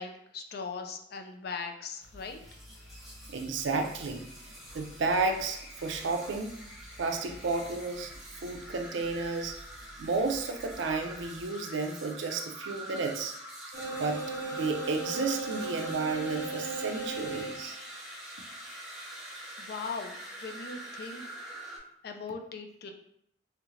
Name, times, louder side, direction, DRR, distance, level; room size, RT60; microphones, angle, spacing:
voice 1, 0.0-2.4 19.6-21.2 22.0-22.9, left 4 dB, 50° left, 5 dB, 0.4 m, -39 dB
sound 1, 2.0-11.4, equal, 85° left, 0.7 m, -52 dB
sound 2, 2.3-21.8, right 1 dB, ahead, 0.6 m, -45 dB
voice 2, 3.3-4.3 4.7-6.6 7.0-8.1 8.4-9.6 10.0-13.3 14.0-14.2 14.5-17.8, right 3 dB, 70° right, 5 dB, 0.4 m, -32 dB
sound 3, 13.7-17.9, right 3 dB, 50° right, 0.8 m, -37 dB
3.3 x 2.4 x 3.1 m, 0.71 s
head